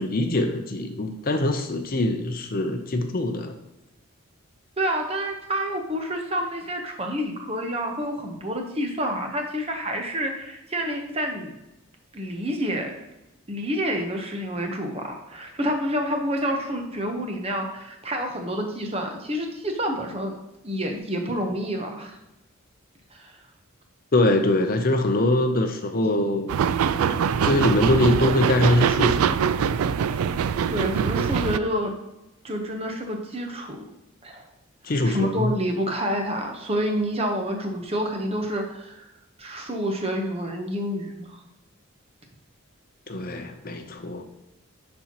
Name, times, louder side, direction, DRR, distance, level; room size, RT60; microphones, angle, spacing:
voice 1, 0.0-3.5 24.1-26.6 27.1-29.4 34.8-35.5 43.1-44.2, left 2 dB, 40° left, 6 dB, 0.6 m, -23 dB
voice 2, 4.8-11.5 12.1-12.9 13.5-20.4 20.6-22.2 23.1-23.3 30.7-31.9 32.4-33.9 34.2-34.4 35.0-39.0 39.4-41.4, equal, 25° right, 3 dB, 0.9 m, -28 dB
sound 1, 26.5-31.6, right 7 dB, 85° right, 0.3 m, -23 dB
10.5 x 4.3 x 2.9 m, 0.96 s
head